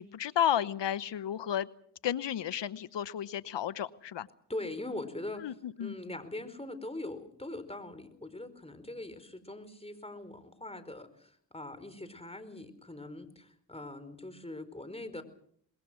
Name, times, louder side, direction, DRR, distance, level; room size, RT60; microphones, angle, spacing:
voice 1, 0.0-1.7 2.0-4.3 5.4-6.0, left 10 dB, 75° left, 16 dB, 0.9 m, -32 dB
voice 2, 4.5-5.5 5.8-15.2, left 2 dB, 15° left, 11 dB, 4.6 m, -42 dB
25.0 x 21.5 x 6.3 m, 0.65 s
supercardioid pair, 45°, 43 cm